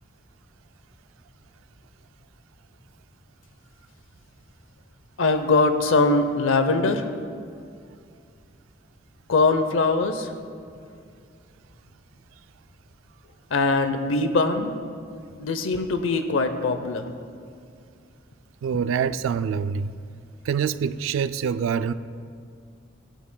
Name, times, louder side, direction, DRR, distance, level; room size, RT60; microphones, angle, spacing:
voice 1, 5.2-7.1 9.3-10.3 13.5-14.7 15.4-17.1, left 3 dB, 85° left, 8 dB, 0.6 m, -22 dB
voice 2, 18.6-19.9 20.4-21.9, right 7 dB, 85° right, 13 dB, 0.3 m, -25 dB
16.5 x 9.0 x 2.2 m, 2.3 s
head